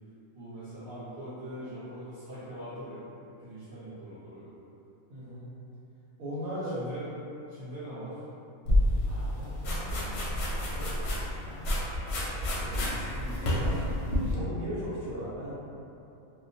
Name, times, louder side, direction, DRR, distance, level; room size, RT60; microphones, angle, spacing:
voice 1, 0.3-3.0 3.4-4.5 6.6-7.1 7.5-8.2 12.6-13.9, right 1 dB, 45° right, -14 dB, 0.9 m, -42 dB
voice 2, 5.1-5.5 6.2-6.9 9.0-10.9 11.4-11.8 12.6-13.0 14.3-15.5, equal, 85° right, -11 dB, 1.1 m, -39 dB
sound 1, 8.7-14.4, left 1 dB, 65° left, 0.7 m, -29 dB
2.3 x 2.1 x 2.6 m, 2.8 s
omnidirectional pair, 1.4 m